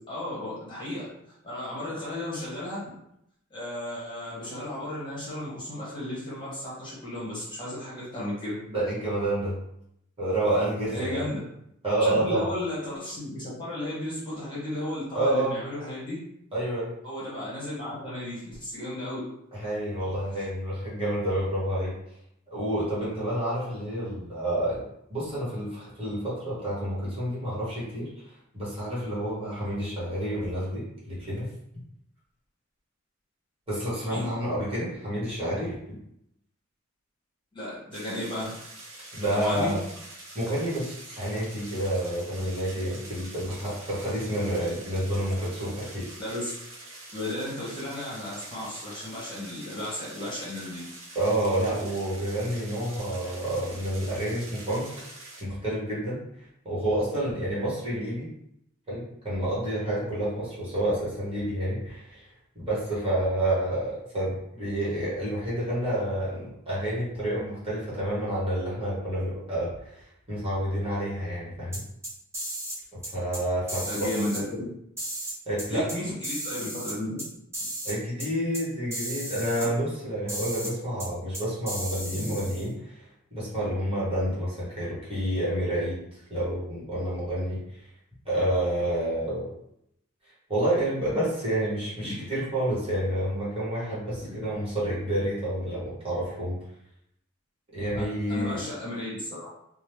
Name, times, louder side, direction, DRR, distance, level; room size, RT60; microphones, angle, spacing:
voice 1, 0.1-1.1 1.4-2.8 3.5-8.6 10.9-11.4 12.0-16.2 17.0-19.2 34.0-34.3 37.5-38.5 39.3-39.7 46.2-46.5 47.1-50.8 73.9-74.6 75.7-77.2 79.6-79.7 82.1-82.2 92.1-92.2 94.2-94.3 97.9-99.5, left 1 dB, 25° left, -8 dB, 1.1 m, -34 dB
voice 2, 8.7-9.6 10.2-11.2 11.8-12.5 15.1-15.5 16.5-16.9 19.5-21.9 22.5-24.8 25.1-28.1 28.5-31.5 33.7-35.7 39.1-39.8 40.3-46.0 51.1-54.9 55.4-56.2 56.6-58.3 58.9-62.3 62.5-71.8 73.1-73.9 75.4-75.9 77.8-83.0 83.3-87.6 88.2-89.5 90.5-96.6 97.7-98.6, right 1 dB, 30° right, -9 dB, 1.3 m, -29 dB
sound 1, 37.9-55.4, right 2 dB, 85° right, 0.7 m, -45 dB
sound 2, 71.7-72.8 73.0-73.4 73.7-74.4 75.0-76.0 76.2-77.3 77.5-77.9 78.2-78.3 78.5-78.6 78.9-79.7 80.3-80.7 81.0-81.1 81.3-82.7, right 1 dB, 15° right, 0.8 m, -35 dB
2.9 x 2.0 x 3.2 m, 0.77 s
head